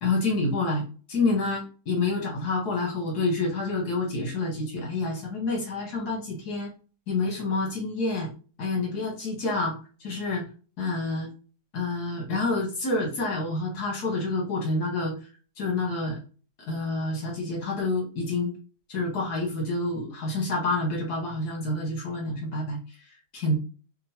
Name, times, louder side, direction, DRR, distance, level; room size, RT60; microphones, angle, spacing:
voice 1, 0.0-6.7 7.1-8.3 8.6-9.7 10.0-10.4 10.8-11.3 11.7-15.2 15.6-16.2 16.7-18.5 18.9-22.8 23.3-23.6, left 2 dB, 80° left, -1 dB, 1.8 m, -28 dB
3.7 x 2.2 x 4.3 m, 0.36 s
omnidirectional pair, 1.7 m